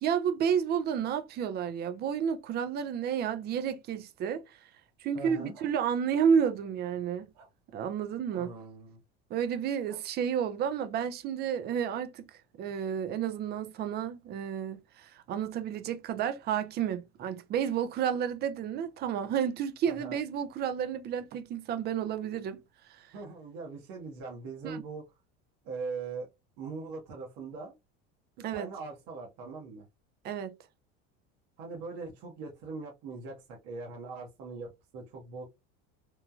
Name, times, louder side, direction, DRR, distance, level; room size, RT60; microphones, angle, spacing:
voice 1, 0.0-4.4 5.0-7.3 7.7-8.5 9.3-12.3 12.6-22.6 23.0-23.1 24.6-24.8 28.4-28.7 30.2-30.5, right 8 dB, 35° right, 0.4 m, -31 dB
voice 2, 5.1-5.5 8.4-9.0 19.9-20.2 23.1-25.0 25.6-26.3 26.6-27.7 28.4-29.9 31.6-35.4, right 4 dB, 60° right, 1.0 m, -41 dB
sound 1, 5.5-5.7 6.4-6.5 7.3-7.5 8.3-8.4 9.9-10.0 10.9-11.1, right 5 dB, 85° right, 1.4 m, -52 dB
3.1 x 2.2 x 2.4 m
supercardioid pair, 125°, 31 cm